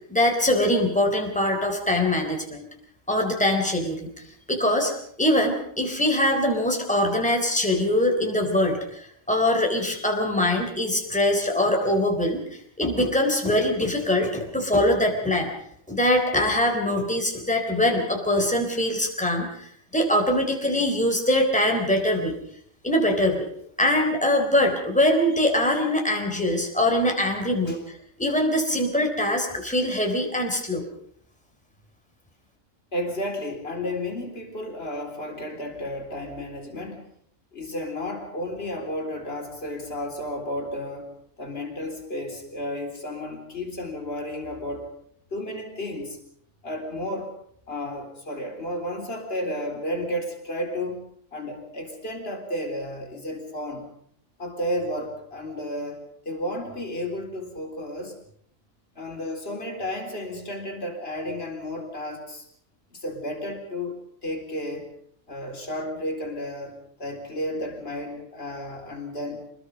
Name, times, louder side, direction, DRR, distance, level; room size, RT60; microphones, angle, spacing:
voice 1, 0.1-2.7 3.1-4.1 4.5-4.9 5.2-12.4 12.8-15.5 15.9-22.3 22.8-23.5 23.8-30.8, left 1 dB, 5° left, 2 dB, 3.7 m, -23 dB
voice 2, 32.9-37.1 37.5-41.1 41.4-44.9 45.3-46.2 46.6-47.3 47.7-53.9 54.4-58.2 59.0-62.4 62.9-64.9 65.3-69.5, left 1 dB, 40° left, 3 dB, 4.2 m, -32 dB
26.5 x 21.0 x 5.3 m, 0.67 s
omnidirectional pair, 1.5 m